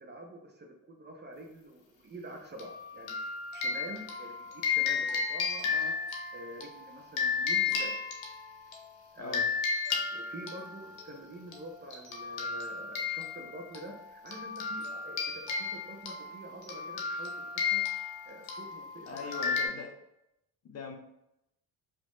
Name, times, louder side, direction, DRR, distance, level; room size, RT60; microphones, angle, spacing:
voice 1, 0.0-3.2 3.5-5.9 6.3-8.1 9.1-9.4 10.1-17.8 18.3-19.3, right 1 dB, 25° right, 2 dB, 0.4 m, -46 dB
sound 1, 2.6-8.8 9.3-11.1 11.5-11.6 11.9-19.7, left 6 dB, 80° left, 0.8 m, -33 dB
voice 2, 19.1-20.0 20.6-21.0, left 5 dB, 35° left, 3 dB, 0.5 m, -41 dB
2.8 x 2.0 x 3.0 m, 0.85 s
supercardioid pair, 70°, 44 cm